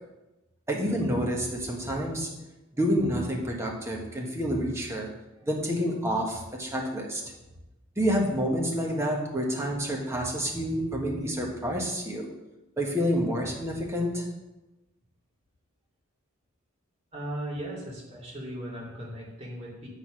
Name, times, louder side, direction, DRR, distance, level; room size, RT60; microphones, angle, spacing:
voice 1, 0.7-2.3 2.8-5.1 5.4-7.2 8.0-12.3 12.8-14.2, equal, 15° right, -1 dB, 1.2 m, -28 dB
voice 2, 17.1-19.9, right 1 dB, 30° right, -4 dB, 2.4 m, -37 dB
8.5 x 4.0 x 6.2 m, 1.0 s
head